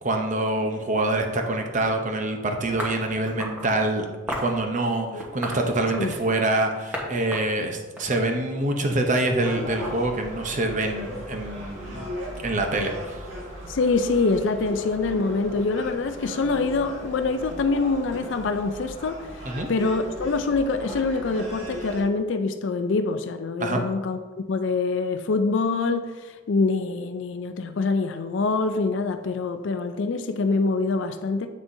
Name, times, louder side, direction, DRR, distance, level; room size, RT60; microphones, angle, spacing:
voice 1, 0.0-4.1 4.4-12.1 12.4-12.9 19.4-19.7 23.6-23.8, right 2 dB, 35° right, 3 dB, 0.7 m, -25 dB
sound 1, 2.8-3.7 4.3-4.6 5.2-6.3 6.9-7.1 7.3-8.7, equal, 10° right, 1.0 m, -33 dB
Gull seagull, 9.4-22.0, equal, 65° right, 1.9 m, -37 dB
voice 2, 13.7-19.4 19.7-24.2 24.5-31.5, left 3 dB, 60° left, 8 dB, 0.4 m, -25 dB
7.4 x 6.2 x 2.7 m, 1.3 s
head